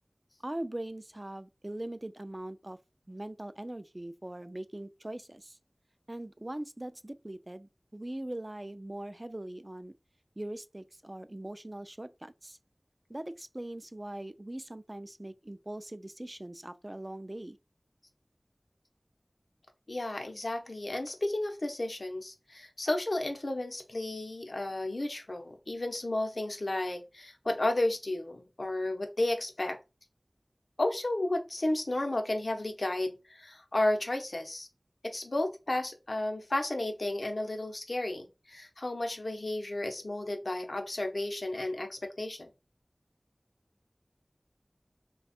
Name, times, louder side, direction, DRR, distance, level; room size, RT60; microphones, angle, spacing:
voice 1, 0.4-2.8 3.1-5.6 6.1-9.9 10.4-12.6 13.1-17.6, right 1 dB, 35° right, 0.3 m, -41 dB
voice 2, 19.9-29.8 30.8-34.7 35.0-42.5, left 1 dB, 85° left, 0.7 m, -33 dB
3.3 x 2.3 x 4.1 m
wide cardioid pair, 40°, 0 cm